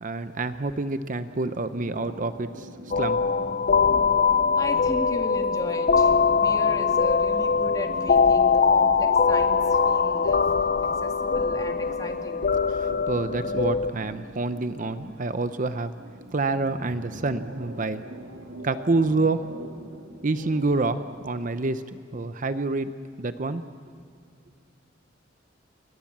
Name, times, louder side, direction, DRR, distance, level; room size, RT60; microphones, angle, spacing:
voice 1, 0.0-2.7 3.0-3.2 12.7-15.9 16.3-18.0 18.6-19.5 20.2-22.9 23.2-23.6, right 3 dB, 45° right, 11 dB, 0.7 m, -27 dB
sound 1, 1.7-21.2, equal, 80° right, 3.1 m, -43 dB
sound 2, 2.9-13.9, left 5 dB, 45° left, 0.5 m, -22 dB
voice 2, 4.5-10.5 11.0-12.4, left 1 dB, 20° left, 4 dB, 1.9 m, -36 dB
28.0 x 22.0 x 7.4 m, 2.4 s
head